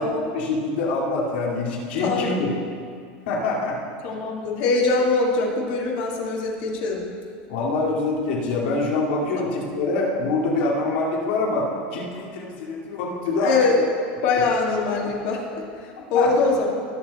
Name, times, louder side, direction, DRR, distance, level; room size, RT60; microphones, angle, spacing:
voice 1, 0.0-2.5 3.3-3.8 7.5-13.5 16.1-16.3, left 3 dB, 85° left, -3 dB, 2.6 m, -25 dB
voice 2, 2.0-2.3 4.0-7.0 9.4-9.6 13.4-13.8 14.2-16.7, left 3 dB, 65° left, -2 dB, 2.1 m, -23 dB
18.5 x 6.6 x 4.2 m, 2.2 s
supercardioid pair, 145°, 5 cm